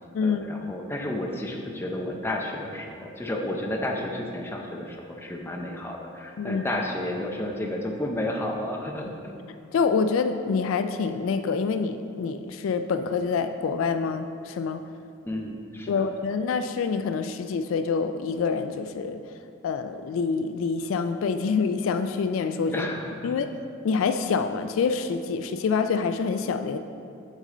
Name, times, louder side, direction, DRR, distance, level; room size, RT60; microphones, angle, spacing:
voice 1, 0.2-9.4 15.3-16.1 22.7-23.4, left 1 dB, 10° left, 0 dB, 0.6 m, -32 dB
voice 2, 9.7-14.8 15.9-19.2 19.6-22.9 23.2-23.5 23.8-26.8, left 5 dB, 70° left, 9 dB, 0.3 m, -26 dB
6.5 x 6.3 x 3.8 m, 2.5 s
head